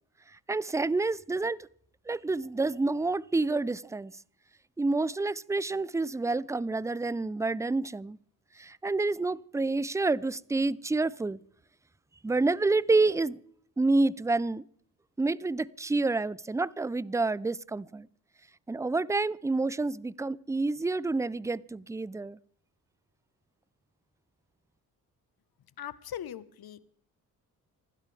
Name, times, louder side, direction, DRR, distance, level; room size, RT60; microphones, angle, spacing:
voice 1, 0.5-1.7 2.1-4.1 4.8-8.2 8.6-11.4 12.2-13.4 13.8-14.6 15.2-18.1 18.7-22.4, right 3 dB, 5° right, 0.5 m, -28 dB
voice 2, 25.8-26.8, left 10 dB, 55° left, 1.3 m, -40 dB
26.0 x 12.5 x 3.5 m
hypercardioid pair, 45°, 44 cm